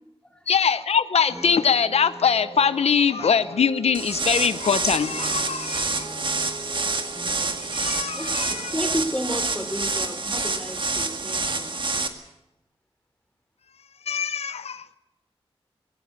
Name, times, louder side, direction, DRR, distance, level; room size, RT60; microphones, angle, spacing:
voice 1, 0.5-6.1 7.7-8.7 14.1-14.8, left 6 dB, 90° left, 0.7 m, -22 dB
sound 1, 1.3-9.8, right 2 dB, 30° right, 6.3 m, -42 dB
sound 2, 3.9-12.1, right 3 dB, 50° right, 1.9 m, -27 dB
voice 2, 8.1-11.8, equal, 10° left, 3.2 m, -32 dB
18.5 x 18.0 x 8.7 m
wide cardioid pair, 65°, 10 cm